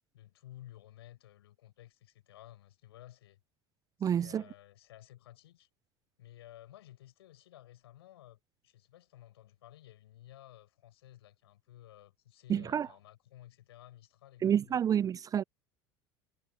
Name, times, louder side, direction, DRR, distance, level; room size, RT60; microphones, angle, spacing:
voice 1, 0.1-3.4 4.0-5.7 6.2-14.8, left 13 dB, 75° left, 6.2 m, -55 dB
voice 2, 4.0-4.4 12.5-12.9 14.4-15.4, right 9 dB, 25° right, 0.3 m, -29 dB
hypercardioid pair, 75°, 13 cm